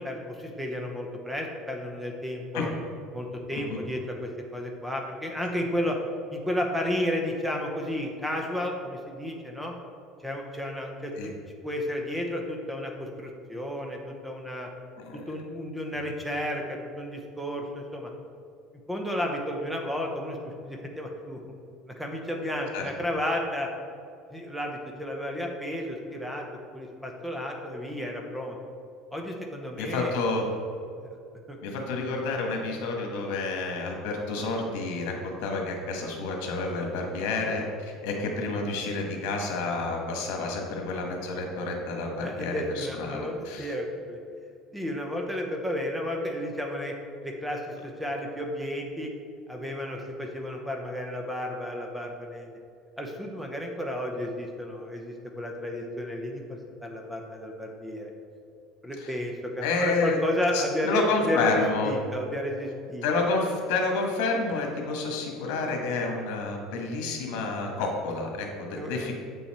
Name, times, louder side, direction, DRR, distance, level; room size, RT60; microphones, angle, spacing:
voice 1, 0.0-2.7 3.1-6.0 6.3-9.7 10.2-11.3 11.6-14.7 15.1-18.1 18.9-21.4 21.9-23.7 24.3-26.5 26.7-28.6 29.1-30.1 31.0-31.1 31.5-31.6 42.2-44.2 44.7-46.9 47.2-49.1 49.5-52.5 53.0-58.1 58.8-61.0 61.3-63.0 68.7-69.1, left 1 dB, 5° right, 1 dB, 0.7 m, -32 dB
voice 2, 29.8-30.5 31.6-43.7 59.0-59.1 59.6-60.2 60.5-62.0 63.0-69.1, left 3 dB, 80° left, 2 dB, 1.5 m, -29 dB
8.1 x 5.6 x 4.3 m, 2.4 s
cardioid pair, 170°, 0 cm